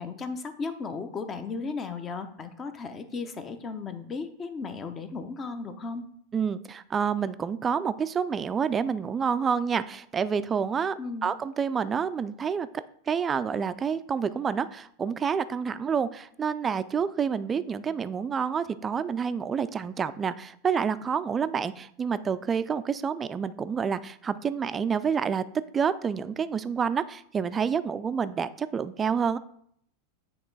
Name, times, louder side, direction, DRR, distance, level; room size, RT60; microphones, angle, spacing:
voice 1, 0.0-6.1 11.0-11.3, left 4 dB, 30° left, 9 dB, 0.7 m, -35 dB
voice 2, 6.3-25.4 25.7-29.4, right 6 dB, 25° right, 14 dB, 0.3 m, -28 dB
8.7 x 3.0 x 4.0 m, 0.67 s
hypercardioid pair, 95°, 0 cm